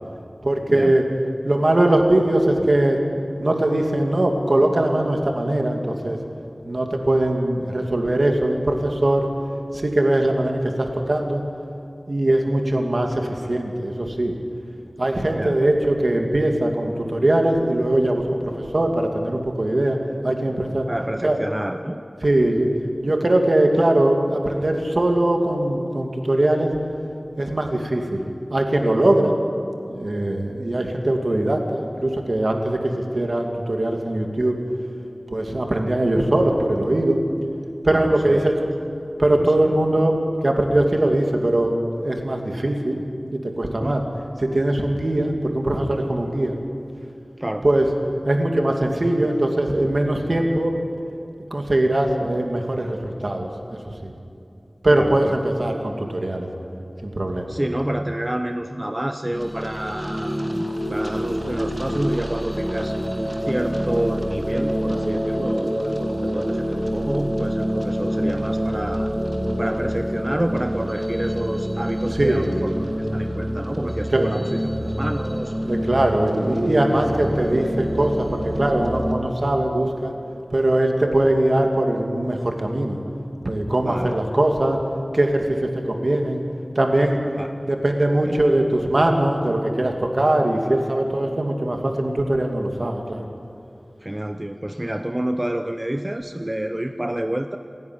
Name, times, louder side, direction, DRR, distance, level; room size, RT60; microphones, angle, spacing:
voice 1, 0.4-1.1 1.4-3.0 3.4-6.2 6.6-9.3 9.7-11.4 12.1-14.3 15.0-20.0 20.2-20.9 21.2-21.4 22.2-22.7 23.0-26.7 27.4-28.3 28.5-29.4 29.9-34.6 35.3-37.2 37.8-38.7 39.2-40.2 40.4-43.0 43.4-44.0 44.4-46.5 47.6-47.9 48.2-50.7 51.5-54.1 54.8-56.5 57.0-57.5 72.2-72.5 74.1-74.3 75.6-80.1 80.5-83.0 83.4-84.8 85.1-86.4 86.8-87.2 87.6-93.2, right 1 dB, 60° right, 3 dB, 2.5 m, -21 dB
voice 2, 20.9-22.0 37.9-38.5 39.4-39.7 43.8-44.0 47.4-47.7 54.9-55.4 57.5-62.9 63.4-69.1 69.6-75.5 83.8-84.1 87.4-87.5 88.3-88.4 94.0-97.6, right 1 dB, 25° right, 7 dB, 0.8 m, -28 dB
sound 1, 59.3-79.1, equal, 5° right, 2.5 m, -26 dB
27.5 x 10.5 x 9.8 m, 2.5 s
wide cardioid pair, 55°, 0 cm